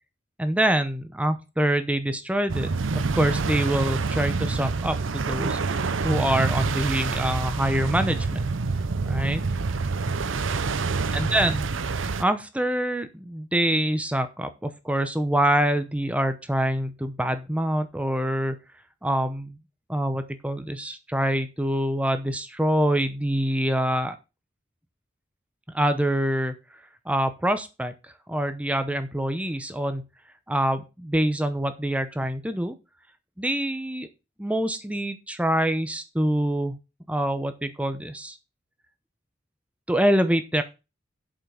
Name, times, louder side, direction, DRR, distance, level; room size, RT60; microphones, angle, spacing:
voice 1, 0.4-5.6 6.0-8.5 9.0-9.4 11.1-11.6 11.9-18.6 19.0-19.6 19.9-24.2 25.7-26.5 27.1-27.9 28.3-30.0 30.5-32.7 33.4-34.1 34.4-36.8 37.1-38.4 39.9-40.6, right 1 dB, 5° right, 9 dB, 0.8 m, -25 dB
sound 1, 2.5-12.2, right 4 dB, 80° right, 0.7 m, -27 dB
7.6 x 5.7 x 6.3 m, 0.28 s
head